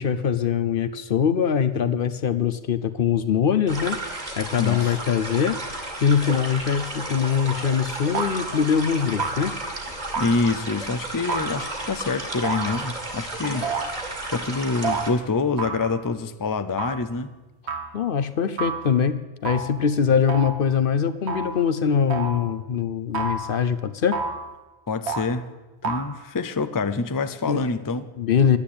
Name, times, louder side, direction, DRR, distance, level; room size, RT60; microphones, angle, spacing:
voice 1, 0.0-4.0 4.4-9.5 13.4-13.7 17.9-24.2 27.5-27.6 28.2-28.6, left 7 dB, 60° left, 11 dB, 0.9 m, -23 dB
sound 1, 3.7-15.1, right 2 dB, 40° right, 2.2 m, -33 dB
voice 2, 4.6-5.0 10.2-13.7 14.3-17.3 24.9-25.5 25.8-28.1, left 4 dB, 25° left, 10 dB, 0.5 m, -26 dB
sound 2, 7.4-7.7 8.1-8.7 9.2-9.7 10.1-10.7 11.3-11.9 12.4-13.2 13.6-14.2 14.8-15.1 15.6-16.1 16.8-17.1 17.7-18.0 18.6-19.0 19.5-19.8 20.3-20.7 21.3-21.6 22.1-22.5 23.1-23.6 24.1-24.5 25.1-25.4 25.8-26.1, right 4 dB, 75° right, 1.4 m, -30 dB
11.5 x 10.0 x 8.6 m, 1.1 s
omnidirectional pair, 1.1 m